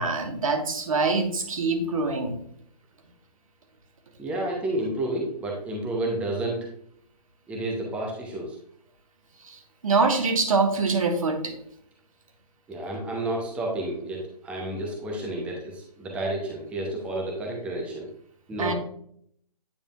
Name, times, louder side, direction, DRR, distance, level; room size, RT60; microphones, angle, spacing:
voice 1, 0.0-2.4 9.4-11.5 18.6-18.7, right 3 dB, 55° right, 4 dB, 1.5 m, -24 dB
voice 2, 4.2-6.7 7.5-8.6 12.7-18.1 18.5-18.7, right 1 dB, 5° right, -1 dB, 0.8 m, -30 dB
9.1 x 5.0 x 2.4 m, 0.65 s
figure-of-eight pair, 145°, 21 cm